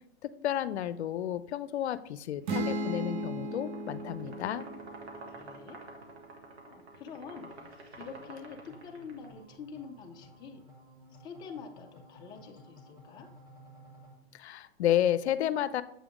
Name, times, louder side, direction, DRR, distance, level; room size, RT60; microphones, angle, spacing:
voice 1, 0.4-4.7 14.3-15.8, left 11 dB, 85° left, 14 dB, 0.5 m, -31 dB
sound 1, 2.5-6.2, right 1 dB, 50° right, 0.8 m, -36 dB
sound 2, 3.5-9.3, right 2 dB, 80° right, 1.4 m, -49 dB
voice 2, 5.3-5.8 6.7-7.5 8.0-10.6 11.2-13.3, left 5 dB, 15° left, 3 dB, 0.4 m, -46 dB
sound 3, 8.7-14.1, equal, 10° right, 1.1 m, -55 dB
7.5 x 3.5 x 3.6 m, 0.76 s
hypercardioid pair, 130°, 32 cm